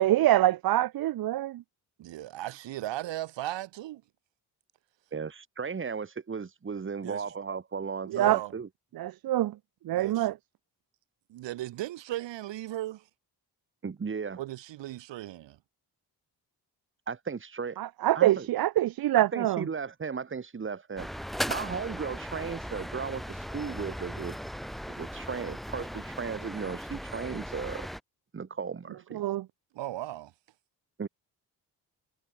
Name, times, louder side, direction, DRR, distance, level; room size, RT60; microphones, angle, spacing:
voice 1, 0.0-1.6 8.1-8.4 9.0-9.5 9.9-10.3 17.8-19.7 29.1-29.4, right 14 dB, 55° right, 0.6 m, -25 dB
voice 2, 2.0-4.0 7.0-7.2 8.1-8.5 9.9-10.3 11.3-13.1 14.4-15.6 29.7-30.3, right 15 dB, 80° right, 1.1 m, -37 dB
voice 3, 5.1-8.7 13.8-14.4 17.1-17.8 18.1-18.5 19.2-21.1 21.5-24.4 24.9-27.9 28.3-29.2 31.0-31.1, right 5 dB, 30° right, 1.3 m, -35 dB
sound 1, 21.0-28.0, equal, ahead, 2.2 m, -38 dB
supercardioid pair, 60°, 43 cm